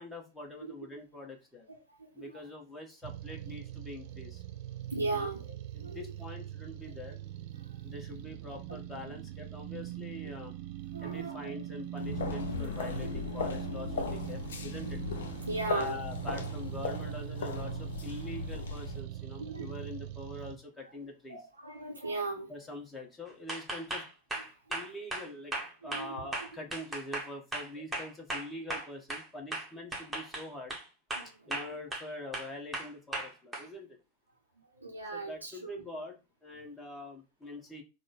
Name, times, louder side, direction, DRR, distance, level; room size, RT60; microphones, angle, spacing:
voice 1, 0.0-1.7 2.1-4.4 5.1-5.3 5.7-7.2 7.8-10.5 11.0-15.0 15.7-21.4 22.5-24.0 24.7-25.5 25.8-30.8 31.5-34.0 35.1-37.8, left 2 dB, 10° left, 1 dB, 1.2 m, -44 dB
voice 2, 1.7-2.4 4.9-5.5 5.8-6.1 7.6-7.8 8.4-8.8 10.2-10.3 10.9-11.6 12.2-12.3 13.0-13.2 13.5-13.6 15.4-16.0 19.4-19.8 21.3-22.5 24.3-24.8 25.8-26.5 31.2-31.8 34.6-35.8, right 3 dB, 85° right, -3 dB, 0.7 m, -39 dB
sound 1, 3.0-20.6, right 13 dB, 45° right, 0.4 m, -42 dB
sound 2, 12.0-19.0, left 5 dB, 60° left, 0.6 m, -37 dB
sound 3, 23.5-29.2 29.5-30.8 31.1-32.1 32.3-33.6, right 2 dB, 5° right, 1.1 m, -37 dB
3.8 x 2.1 x 4.0 m, 0.29 s
figure-of-eight pair, 90°, 0 cm